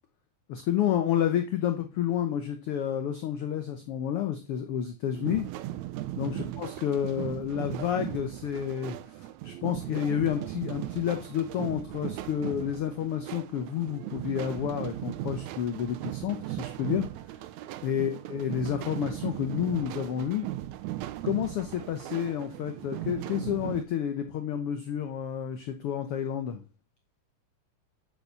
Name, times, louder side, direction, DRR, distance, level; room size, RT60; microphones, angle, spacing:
voice 1, 0.5-5.5 6.1-17.1 17.8-20.5 21.2-26.6, left 9 dB, 70° left, 7 dB, 1.4 m, -30 dB
sound 1, 5.1-23.9, right 15 dB, 75° right, 1.9 m, -37 dB
8.8 x 7.1 x 6.8 m, 0.37 s
omnidirectional pair, 3.5 m